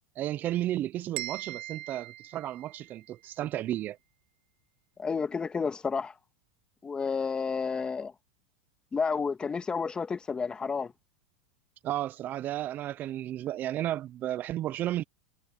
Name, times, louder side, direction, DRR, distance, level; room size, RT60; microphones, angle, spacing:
voice 1, 0.2-4.0 11.8-15.0, right 13 dB, 40° right, 0.9 m, -33 dB
sound 1, 1.2-3.2, right 15 dB, 70° right, 1.9 m, -41 dB
voice 2, 5.0-6.1 6.8-8.1 8.9-10.9, left 5 dB, 20° left, 2.0 m, -31 dB
hypercardioid pair, 110°, 5 cm